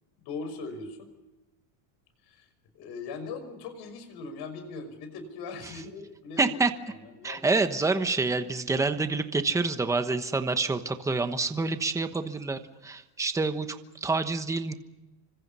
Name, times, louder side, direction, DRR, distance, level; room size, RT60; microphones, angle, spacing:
voice 1, 0.2-1.1 2.2-2.5 2.7-6.6 6.9-7.4, left 4 dB, 55° left, 9 dB, 5.9 m, -40 dB
voice 2, 6.4-6.7 7.2-14.7, right 3 dB, 5° right, 8 dB, 1.1 m, -27 dB
28.0 x 25.5 x 5.6 m, 1.0 s
cardioid pair, 165°, 47 cm